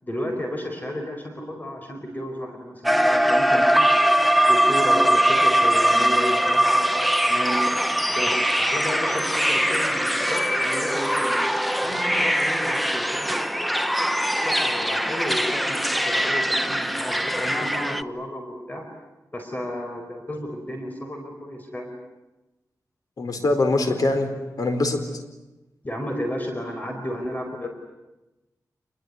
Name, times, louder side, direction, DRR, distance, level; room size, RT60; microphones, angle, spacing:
voice 1, 0.0-4.0 4.5-7.6 8.1-11.5 11.8-13.5 14.3-18.9 19.3-21.9 25.8-27.7, equal, 25° left, 3 dB, 4.7 m, -32 dB
sound 1, 2.8-18.0, equal, ahead, 0.9 m, -21 dB
voice 2, 23.2-24.3 24.6-25.0, left 2 dB, 70° left, 7 dB, 4.4 m, -22 dB
28.0 x 22.5 x 9.7 m, 1.0 s
wide cardioid pair, 90°, 7 cm